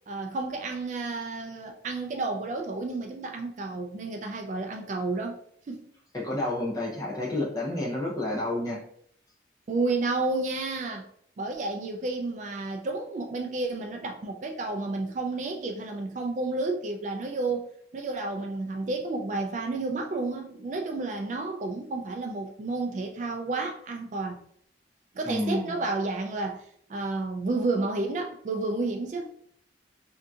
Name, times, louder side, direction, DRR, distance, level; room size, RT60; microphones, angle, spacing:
voice 1, 0.1-5.4 5.7-5.9 9.7-11.1 11.4-17.7 17.9-24.4 25.1-26.6 26.9-29.3, right 3 dB, 40° right, 0.3 m, -31 dB
voice 2, 6.1-8.8 25.2-25.8, left 1 dB, 20° left, 0.7 m, -30 dB
3.6 x 2.6 x 2.4 m
head